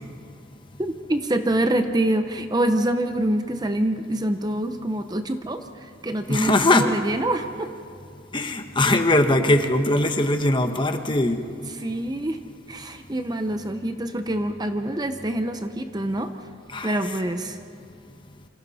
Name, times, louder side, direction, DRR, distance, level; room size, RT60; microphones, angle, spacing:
voice 1, 0.8-7.7 11.7-12.4 12.7-16.3 16.8-17.6, right 1 dB, 20° right, 7 dB, 0.8 m, -26 dB
voice 2, 6.3-6.9 8.3-11.4 16.7-17.0, left 1 dB, 25° left, 6 dB, 1.1 m, -20 dB
27.5 x 25.5 x 4.2 m, 2.4 s
head